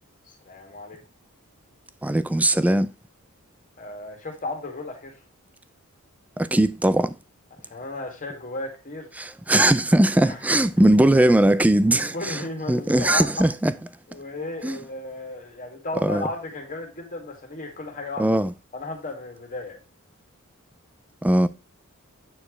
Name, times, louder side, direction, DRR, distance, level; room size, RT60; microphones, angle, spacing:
voice 1, 0.3-1.0 3.8-5.2 7.6-9.1 10.2-10.6 11.9-13.5 14.1-18.3 18.7-19.8, left 2 dB, 40° left, 2.1 m, -34 dB
voice 2, 2.0-2.9 6.4-7.1 9.2-12.4 12.7-13.7 14.6-14.8 16.0-16.3 18.2-18.5 21.2-21.5, right 1 dB, 5° right, 0.3 m, -19 dB
8.9 x 4.6 x 3.1 m
head